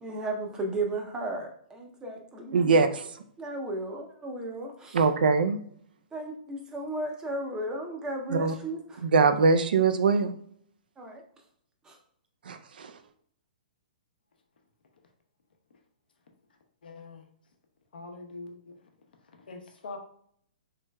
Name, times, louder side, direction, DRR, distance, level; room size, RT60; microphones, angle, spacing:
voice 1, 0.0-2.9 3.4-5.0 6.1-9.1 11.0-11.2 11.8-12.0, right 2 dB, 15° right, 2 dB, 0.5 m, -35 dB
voice 2, 2.5-3.1 4.9-5.6 8.3-8.5 9.0-10.3 12.5-12.9, right 4 dB, 75° right, 8 dB, 0.4 m, -22 dB
voice 3, 16.8-17.2 17.9-18.8 19.5-20.0, left 3 dB, 75° left, 3 dB, 0.7 m, -43 dB
3.3 x 3.1 x 2.2 m, 0.65 s
hypercardioid pair, 140°, 5 cm